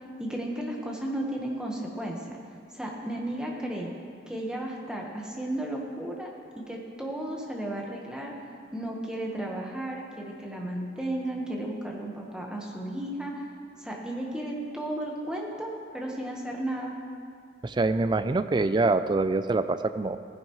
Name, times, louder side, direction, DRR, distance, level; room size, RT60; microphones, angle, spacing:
voice 1, 0.2-2.4 2.7-3.9 4.3-8.3 8.7-13.3 13.8-16.9, right 1 dB, 5° right, -1 dB, 1.2 m, -34 dB
voice 2, 17.6-20.2, right 3 dB, 25° right, 11 dB, 0.3 m, -25 dB
16.0 x 10.0 x 3.1 m, 2.3 s
head